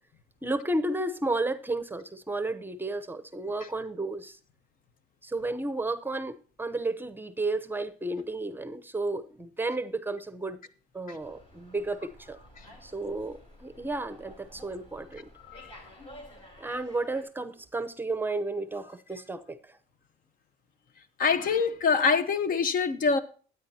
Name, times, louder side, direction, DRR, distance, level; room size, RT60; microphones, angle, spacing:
voice 1, 0.4-4.4 5.2-10.6 10.9-12.4 12.8-15.3 16.6-19.8, right 2 dB, 10° right, 0.8 m, -32 dB
Slam, 11.2-17.2, equal, 35° left, 4.0 m, -51 dB
voice 2, 21.2-23.2, left 5 dB, 55° left, 1.1 m, -25 dB
13.0 x 9.3 x 2.8 m
cardioid pair, 110°, 17 cm